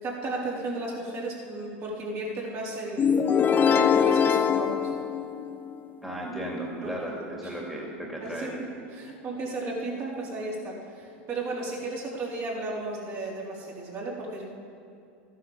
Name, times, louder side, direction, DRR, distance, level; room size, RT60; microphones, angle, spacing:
voice 1, 0.0-3.2 3.7-4.9 6.8-7.6 8.2-14.4, right 2 dB, 40° right, -4 dB, 4.3 m, -34 dB
sound 1, 3.0-5.8, left 7 dB, 25° left, 0.8 m, -23 dB
voice 2, 6.0-8.6, right 1 dB, ahead, -3 dB, 2.7 m, -35 dB
13.5 x 9.8 x 7.3 m, 2.5 s
hypercardioid pair, 100°, 7 cm